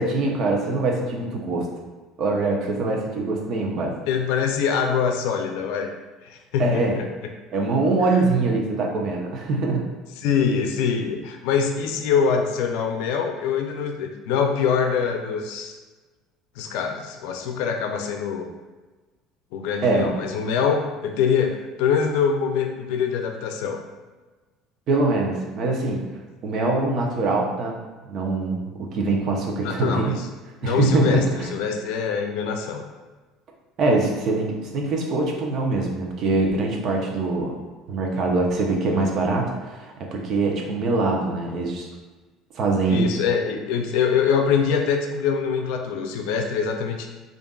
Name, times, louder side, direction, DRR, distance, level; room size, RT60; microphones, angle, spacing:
voice 1, 0.0-1.7 2.2-3.9 6.6-6.9 7.5-9.9 19.8-20.1 24.9-26.0 26.4-27.8 28.1-30.2 30.6-31.5 33.8-37.5 37.9-41.9 42.5-43.0, right 3 dB, 50° right, 0 dB, 0.7 m, -23 dB
voice 2, 4.1-5.9 6.2-7.1 10.2-15.8 16.6-18.5 19.5-23.8 29.6-30.3 30.6-31.2 31.5-32.8 42.9-47.1, left 6 dB, 80° left, 4 dB, 0.4 m, -24 dB
5.1 x 2.5 x 2.3 m, 1.3 s
cardioid pair, 125°, 0 cm